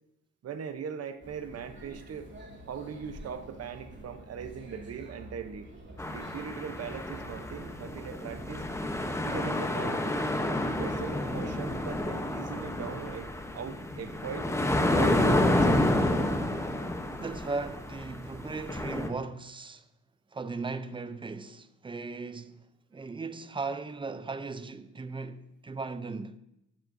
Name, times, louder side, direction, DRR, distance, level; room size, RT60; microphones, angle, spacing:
voice 1, 0.4-2.3 2.7-5.7 6.1-8.7 9.2-10.3 10.7-14.5 15.0-15.9, right 7 dB, 55° right, 0.9 m, -40 dB
sound 1, 1.2-8.7, right 1 dB, 40° right, 2.7 m, -48 dB
sound 2, 6.0-19.1, left 1 dB, 10° left, 0.9 m, -29 dB
voice 2, 17.1-19.9 20.3-22.7 22.9-26.4, right 4 dB, 15° right, 0.5 m, -37 dB
12.5 x 7.4 x 2.7 m
cardioid pair, 90°, 30 cm